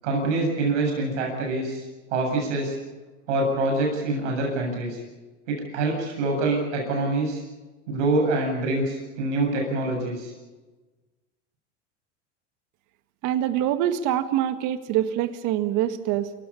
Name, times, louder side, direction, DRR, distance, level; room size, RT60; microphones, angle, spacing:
voice 1, 0.0-1.8 2.1-2.8 3.3-5.0 5.5-7.4 7.9-10.3, right 2 dB, 85° right, 1 dB, 7.7 m, -25 dB
voice 2, 13.2-16.3, right 11 dB, 55° right, 10 dB, 1.7 m, -25 dB
27.5 x 17.0 x 7.0 m, 1.2 s
supercardioid pair, 105°, 35 cm